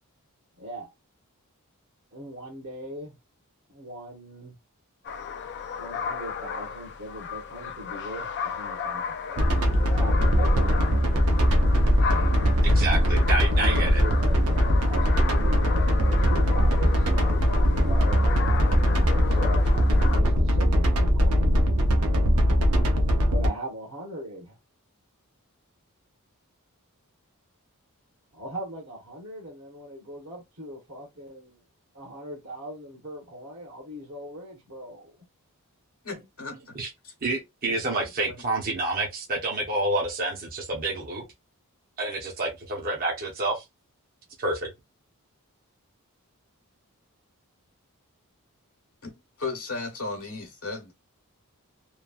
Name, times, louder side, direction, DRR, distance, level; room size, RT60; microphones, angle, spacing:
voice 1, 0.6-0.9 2.1-3.1 3.7-4.5 5.8-9.5 9.8-11.1 13.5-19.8 20.1-21.5 23.3-24.6 28.3-31.6 31.9-35.1, equal, 65° right, 1.1 m, -40 dB
sound 1, 5.0-20.2, left 6 dB, 50° left, 0.3 m, -35 dB
sound 2, 9.4-23.5, equal, 80° right, 0.7 m, -21 dB
voice 2, 12.6-14.0 36.8-36.9 37.2-41.2 42.0-43.6 44.4-44.7, right 2 dB, 40° right, 0.7 m, -28 dB
voice 3, 36.0-36.8 37.0-37.1 38.3-38.4 49.0-49.1 49.4-50.9, left 3 dB, 65° left, 0.9 m, -35 dB
3.1 x 2.2 x 2.3 m
head